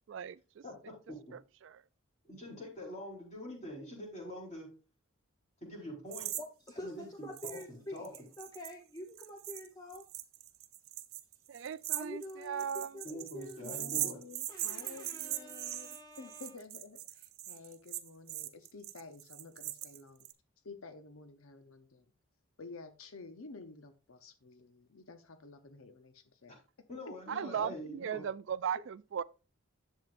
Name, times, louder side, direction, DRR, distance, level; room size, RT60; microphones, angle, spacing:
voice 1, 0.1-0.4 1.3-1.8 11.5-13.0 27.3-29.2, right 8 dB, 60° right, 0.3 m, -37 dB
voice 2, 0.6-1.3 2.2-4.7 5.6-6.3 6.8-8.1 13.0-14.2 26.5-26.6 26.9-28.3, left 1 dB, 30° left, 4.3 m, -45 dB
sound 1, 6.1-6.4 6.7-6.8 7.4-7.7 8.0-20.3, right 14 dB, 75° right, 0.8 m, -40 dB
voice 3, 6.4-10.0 11.9-13.9 14.5-16.5, left 1 dB, 15° left, 0.8 m, -47 dB
voice 4, 13.6-20.3 20.6-22.0 22.6-26.6 27.1-27.2, left 3 dB, 75° left, 0.8 m, -51 dB
10.5 x 7.5 x 2.5 m
head